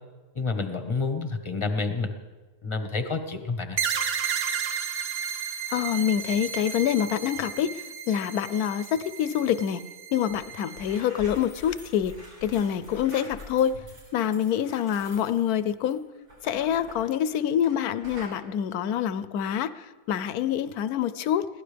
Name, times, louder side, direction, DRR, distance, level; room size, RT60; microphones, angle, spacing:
voice 1, 0.3-2.1 2.6-3.8, left 4 dB, 20° left, 7 dB, 1.0 m, -29 dB
sound 1, 3.8-11.0, right 7 dB, 55° right, 1.1 m, -33 dB
voice 2, 5.7-7.7 8.1-9.8 10.1-12.2 12.4-13.8 14.1-16.0 16.4-19.7 20.1-21.5, left 9 dB, 80° left, 14 dB, 1.2 m, -26 dB
sound 2, 10.3-10.4 10.6-17.8 18.0-18.4, equal, 85° right, 6.2 m, -46 dB
22.5 x 16.0 x 3.4 m, 1.3 s
omnidirectional pair, 1.6 m